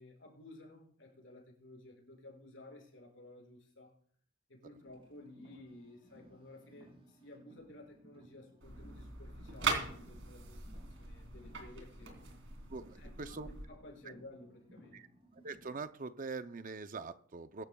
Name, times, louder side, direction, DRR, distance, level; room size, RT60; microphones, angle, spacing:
voice 1, 0.0-3.9 4.5-12.1 13.0-15.1, left 1 dB, 70° left, -2 dB, 5.9 m, -55 dB
Car, 4.8-15.9, equal, 30° right, 6.5 m, -61 dB
sound 1, 8.6-13.7, right 4 dB, 70° right, 3.1 m, -41 dB
voice 2, 12.7-13.5 14.1-14.2 14.9-15.1 15.3-17.6, right 4 dB, 45° right, 11 dB, 0.6 m, -43 dB
23.0 x 12.0 x 2.3 m, 0.62 s
head